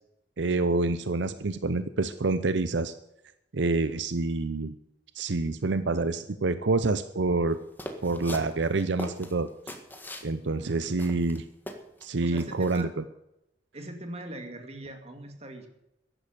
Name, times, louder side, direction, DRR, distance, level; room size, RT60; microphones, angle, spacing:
voice 1, 0.4-2.9 3.5-4.7 5.1-7.6 8.0-9.8 10.2-11.4 12.0-13.0, right 3 dB, 75° right, 12 dB, 0.7 m, -27 dB
sound 1, 7.8-10.3 10.7-10.8 11.0-12.1 12.4-12.8, left 1 dB, 10° left, 1.7 m, -40 dB
voice 2, 10.4-11.0 12.2-12.9 13.7-15.7, right 1 dB, 35° right, 5 dB, 2.4 m, -41 dB
14.0 x 11.0 x 6.8 m, 0.86 s
head